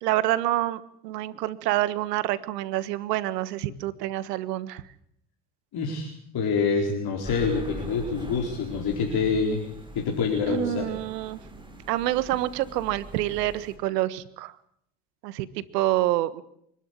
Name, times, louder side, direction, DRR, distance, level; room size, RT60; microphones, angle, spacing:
voice 1, 0.0-4.8 10.5-11.4 11.9-14.5 15.2-16.4, right 14 dB, 90° right, 15 dB, 1.5 m, -27 dB
voice 2, 5.7-10.9, left 5 dB, 50° left, 1 dB, 4.5 m, -26 dB
sound 1, 7.2-13.8, right 1 dB, 10° right, 7.2 m, -42 dB
26.0 x 12.0 x 9.8 m, 0.73 s
supercardioid pair, 85°, 46 cm